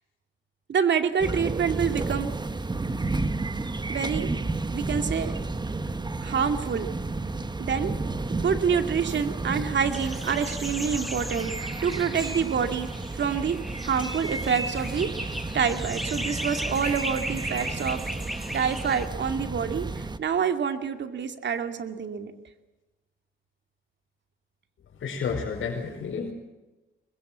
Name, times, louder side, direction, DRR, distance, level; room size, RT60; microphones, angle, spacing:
voice 1, 0.7-2.3 3.9-4.3 4.7-5.3 6.2-6.9 7.6-7.9 8.3-11.5 11.8-12.9 13.2-13.6 13.8-18.0 18.5-22.3, right 7 dB, 60° right, 7 dB, 2.4 m, -27 dB
sound 1, 1.2-20.2, right 3 dB, 20° right, 1.2 m, -32 dB
sound 2, 9.9-19.1, equal, ahead, 1.8 m, -37 dB
voice 2, 25.0-26.3, left 5 dB, 75° left, -2 dB, 5.0 m, -30 dB
24.0 x 22.0 x 7.5 m, 1.1 s
cardioid pair, 90°, 20 cm